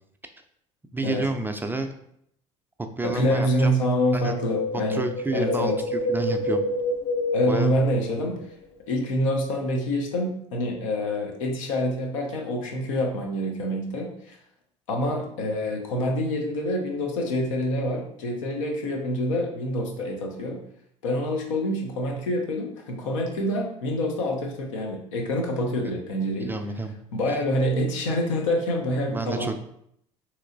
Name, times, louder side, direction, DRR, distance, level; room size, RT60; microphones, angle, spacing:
voice 1, 0.9-1.9 2.8-3.8 4.1-4.3 4.7-6.7 7.5-7.7 26.4-26.9 27.3-27.4 29.1-29.6, right 2 dB, 15° right, 6 dB, 0.4 m, -30 dB
voice 2, 3.0-5.0 5.3-5.7 7.3-8.4 8.9-14.4 14.9-20.6 21.0-26.5 27.1-29.6, equal, 85° left, 1 dB, 0.7 m, -26 dB
Wind, 4.1-8.5 8.7-8.8, left 2 dB, 35° left, 0.6 m, -28 dB
3.0 x 2.9 x 2.6 m, 0.70 s
hypercardioid pair, 70°, 16 cm